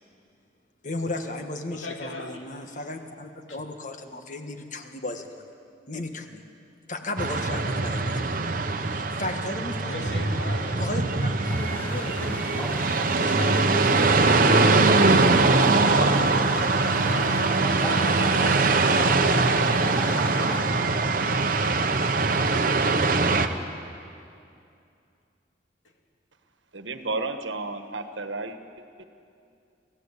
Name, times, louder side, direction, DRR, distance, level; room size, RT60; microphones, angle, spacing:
voice 1, 0.8-5.5 5.9-6.4 6.9-8.4 8.8-10.2 10.8-12.8 13.1-14.2 14.4-16.5, left 2 dB, 40° left, 5 dB, 1.5 m, -36 dB
voice 2, 1.7-2.4 3.5-3.6 9.8-10.8 17.8-18.4, left 2 dB, 85° left, 2 dB, 2.7 m, -37 dB
sound 1, 7.2-23.5, right 3 dB, 45° right, 1.0 m, -22 dB
sound 2, 11.5-20.6, equal, 10° left, 2.7 m, -36 dB
voice 3, 26.7-28.6 29.0-29.1, right 3 dB, 75° right, 8 dB, 1.4 m, -32 dB
27.0 x 15.5 x 8.4 m, 2.5 s
head